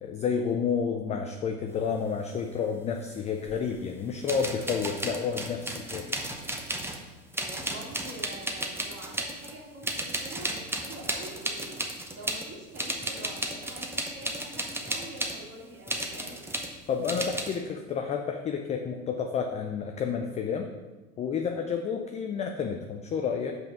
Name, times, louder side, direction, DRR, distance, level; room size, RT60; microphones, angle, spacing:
voice 1, 0.0-6.1 16.9-20.7 21.2-23.5, left 6 dB, 15° left, 4 dB, 0.3 m, -30 dB
sound 1, 3.5-3.6 4.2-7.1 7.3-9.5 9.8-12.5 12.7-15.4 15.9-16.7 17.0-17.6, right 1 dB, 5° right, 0.8 m, -34 dB
voice 2, 7.4-16.4, right 1 dB, 30° right, -7 dB, 2.1 m, -45 dB
5.5 x 5.4 x 5.9 m, 1.2 s
hypercardioid pair, 85°, 45 cm